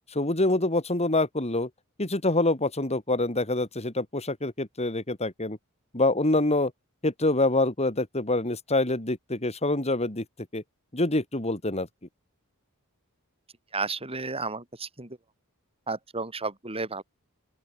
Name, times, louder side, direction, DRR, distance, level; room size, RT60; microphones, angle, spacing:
voice 1, 0.1-1.7 2.0-5.6 5.9-6.7 7.0-10.2 10.5-10.6 10.9-11.9, left 2 dB, 30° left, 3.3 m, -26 dB
voice 2, 13.7-15.2 15.9-17.0, right 3 dB, 25° right, 4.4 m, -32 dB
open air
head